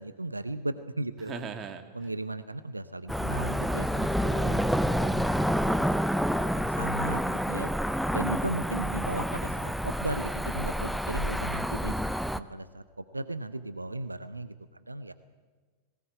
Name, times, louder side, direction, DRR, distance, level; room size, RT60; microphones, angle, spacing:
voice 1, 0.0-1.4 1.9-4.6 6.4-7.7 8.1-11.9 12.3-15.1, right 2 dB, 85° right, 13 dB, 0.7 m, -36 dB
voice 2, 1.3-2.1 4.2-4.7, right 5 dB, 25° right, 7 dB, 2.0 m, -39 dB
Cricket / Motor vehicle (road), 3.1-12.4, equal, ahead, 0.6 m, -28 dB
19.5 x 17.5 x 8.9 m, 1.4 s
figure-of-eight pair, 90°, 0 cm